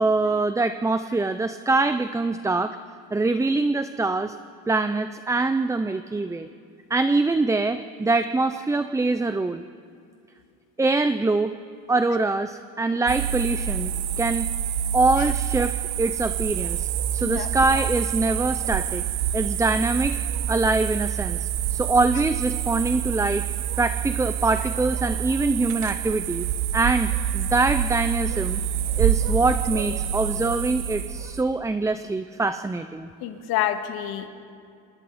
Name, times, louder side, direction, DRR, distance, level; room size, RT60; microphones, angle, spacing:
voice 1, 0.0-2.8 3.1-4.4 4.7-6.5 6.9-9.6 10.8-11.5 11.9-14.5 14.9-19.0 19.3-20.2 20.5-23.5 23.8-26.5 26.7-28.6 29.0-33.1, right 3 dB, 10° right, 10 dB, 0.5 m, -24 dB
sound 1, 13.1-31.4, right 9 dB, 80° right, 1.3 m, -27 dB
voice 2, 33.2-34.3, left 12 dB, 80° left, 6 dB, 2.0 m, -27 dB
27.5 x 26.5 x 4.2 m, 2.4 s
cardioid pair, 110°, 36 cm